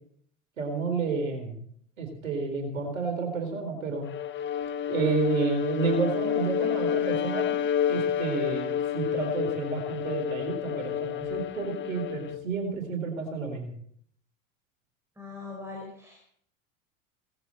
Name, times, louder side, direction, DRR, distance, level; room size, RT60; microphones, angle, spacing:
voice 1, 0.6-1.6 2.0-4.1 4.9-7.6 7.9-13.7, right 4 dB, 80° right, 4 dB, 4.2 m, -30 dB
Bowed string instrument, 4.1-12.4, left 9 dB, 30° left, 1.1 m, -30 dB
voice 2, 15.2-16.3, left 3 dB, 5° right, 1 dB, 4.6 m, -41 dB
17.5 x 15.0 x 4.3 m, 0.63 s
figure-of-eight pair, 80°, 40 cm